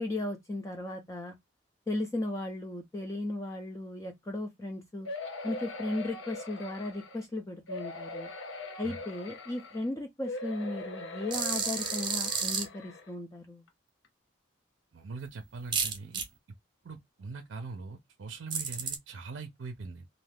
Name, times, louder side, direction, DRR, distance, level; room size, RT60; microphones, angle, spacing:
voice 1, 0.0-1.4 1.9-5.1 5.4-8.3 8.8-13.6, left 2 dB, 15° left, 0.4 m, -36 dB
sound 1, 5.0-7.2 7.7-9.8 10.2-13.1 13.7-13.8 14.0-14.1, left 2 dB, 85° left, 0.7 m, -41 dB
sound 2, 11.3-12.7 15.7-16.2 18.5-19.0, right 6 dB, 25° right, 0.6 m, -31 dB
voice 2, 14.9-16.2 16.8-20.1, right 4 dB, 75° right, 0.5 m, -42 dB
2.5 x 2.3 x 3.3 m
head